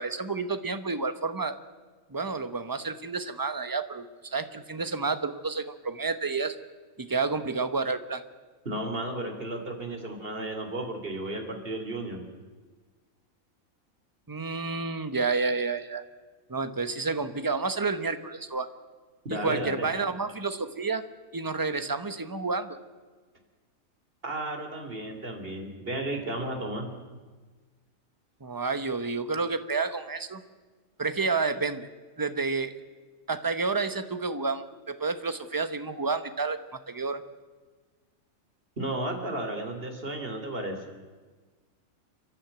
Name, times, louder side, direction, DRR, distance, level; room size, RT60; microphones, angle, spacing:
voice 1, 0.0-1.5 2.1-6.5 7.0-8.2 14.3-16.0 16.5-18.7 19.3-21.0 21.3-22.8 28.4-30.4 31.0-31.9 32.2-32.7 33.3-37.2, right 4 dB, 15° right, 10 dB, 1.0 m, -30 dB
voice 2, 8.6-12.2 19.2-19.9 24.2-26.9 38.8-40.8, right 1 dB, 40° right, 4 dB, 3.2 m, -33 dB
30.0 x 11.5 x 9.0 m, 1.4 s
omnidirectional pair, 1.5 m